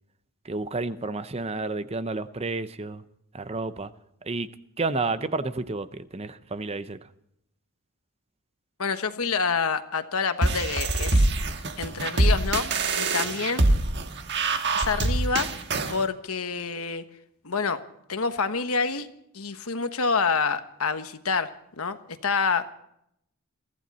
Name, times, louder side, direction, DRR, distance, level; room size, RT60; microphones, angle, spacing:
voice 1, 0.4-3.0 3.3-3.9 4.2-4.5 4.8-7.0, right 3 dB, 30° right, 13 dB, 0.7 m, -30 dB
voice 2, 8.8-11.3 11.8-12.7 13.0-13.6 14.7-15.5 15.9-17.0 17.4-17.8 18.1-19.1 19.3-21.5 21.8-22.0 22.2-22.7, left 5 dB, 70° left, 9 dB, 1.2 m, -27 dB
sound 1, 10.4-16.0, right 2 dB, 50° right, 1.4 m, -24 dB
23.0 x 15.0 x 4.2 m, 0.75 s
head